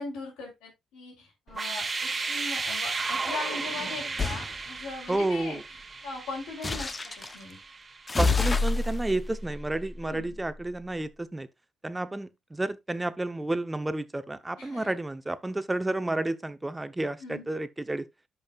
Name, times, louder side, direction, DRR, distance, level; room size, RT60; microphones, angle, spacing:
voice 1, 0.0-5.6 6.0-7.6 10.0-10.4 14.6-14.9 17.2-17.5, left 3 dB, 90° left, 3.3 m, -40 dB
sound 1, 1.5-8.3, right 4 dB, 30° right, 1.3 m, -34 dB
sound 2, 4.2-4.5 6.6-7.4 8.1-10.7, left 3 dB, 25° left, 0.8 m, -29 dB
voice 2, 5.1-5.6 8.2-11.5 11.8-18.1, right 2 dB, 15° right, 0.8 m, -31 dB
13.0 x 5.5 x 2.4 m
cardioid pair, 90°, 0 cm